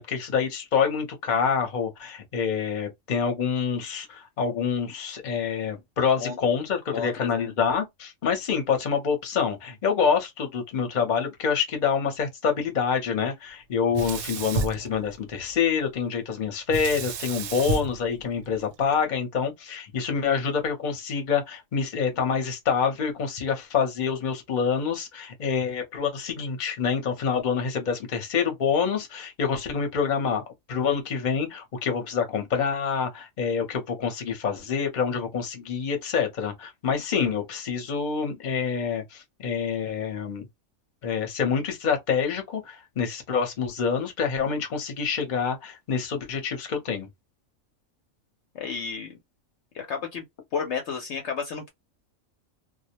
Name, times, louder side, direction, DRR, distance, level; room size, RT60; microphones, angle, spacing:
voice 1, 0.0-30.4 30.7-40.5 41.0-47.1, left 6 dB, 40° left, 0.8 m, -27 dB
voice 2, 6.9-7.5 48.5-49.1 49.7-50.2 50.5-51.7, left 6 dB, 65° left, 0.8 m, -32 dB
Sink (filling or washing), 13.9-15.6 16.7-19.0, right 3 dB, 75° right, 0.9 m, -32 dB
2.3 x 2.1 x 2.8 m
omnidirectional pair, 1.4 m